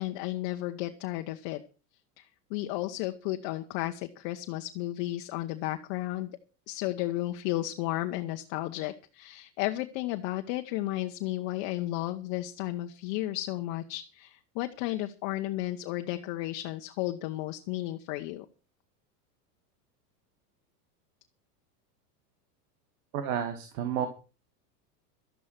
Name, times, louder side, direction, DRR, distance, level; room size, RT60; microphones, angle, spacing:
voice 1, 0.0-1.6 2.2-6.3 6.7-18.4, left 16 dB, 55° left, 5 dB, 1.4 m, -33 dB
voice 2, 23.1-24.1, right 8 dB, 65° right, 8 dB, 2.6 m, -31 dB
13.0 x 11.0 x 6.1 m, 0.34 s
supercardioid pair, 115°, 48 cm